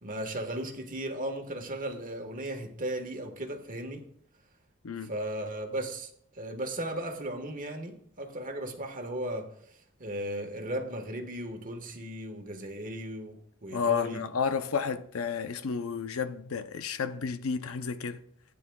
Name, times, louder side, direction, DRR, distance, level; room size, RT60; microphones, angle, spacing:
voice 1, 0.0-4.0 5.0-6.1 6.3-9.5 10.0-14.2, right 1 dB, 40° right, 1.4 m, -36 dB
voice 2, 13.7-18.2, left 6 dB, 75° left, 0.6 m, -31 dB
16.0 x 9.3 x 2.3 m
head